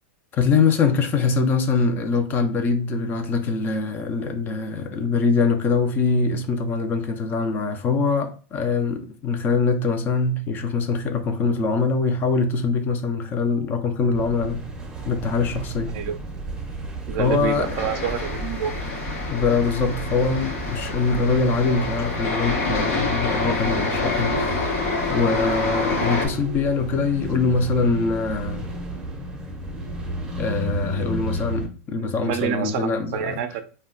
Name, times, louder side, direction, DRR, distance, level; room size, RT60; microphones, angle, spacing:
voice 1, 0.3-14.6 15.1-15.9 17.2-18.1 19.3-28.7 30.4-33.4, left 4 dB, 25° left, 0.4 m, -23 dB
sound 1, 14.1-31.7, right 1 dB, 10° right, 0.6 m, -33 dB
voice 2, 17.1-18.7 26.0-26.3 32.0-33.6, right 8 dB, 50° right, 0.4 m, -28 dB
sound 2, 17.5-26.3, left 3 dB, 75° left, 0.8 m, -27 dB
2.2 x 2.2 x 3.7 m
supercardioid pair, 135°, 7 cm